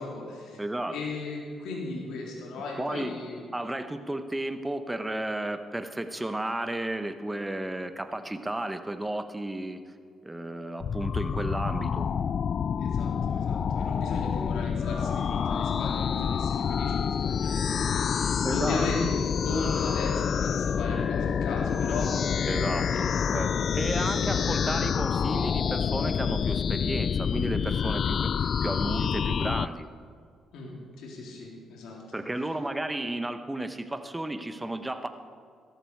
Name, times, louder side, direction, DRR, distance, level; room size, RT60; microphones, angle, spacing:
voice 1, 0.0-0.6 0.9-3.4 12.8-22.1 22.9-23.4 24.0-24.5 30.5-32.0, left 2 dB, 85° left, -2 dB, 3.5 m, -36 dB
voice 2, 0.6-0.9 2.8-3.1 3.5-9.8 10.2-12.1 18.4-18.9 22.5-29.9 32.1-35.1, right 1 dB, 10° right, 9 dB, 1.1 m, -33 dB
sound 1, 10.8-29.7, left 7 dB, 55° left, 0.3 m, -27 dB
16.5 x 14.0 x 4.8 m, 2.1 s
cardioid pair, 90°, 0 cm